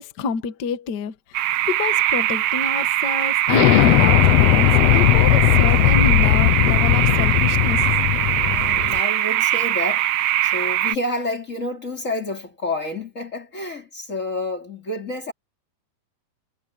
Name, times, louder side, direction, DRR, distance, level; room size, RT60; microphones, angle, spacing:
voice 1, 0.0-7.8, left 5 dB, 50° left, 1.4 m, -28 dB
sound 1, 1.3-11.0, right 13 dB, 80° right, 1.3 m, -21 dB
Explosion, 3.5-9.0, left 15 dB, 80° left, 1.4 m, -17 dB
voice 2, 8.4-15.3, left 2 dB, 25° left, 3.2 m, -29 dB
omnidirectional pair, 3.7 m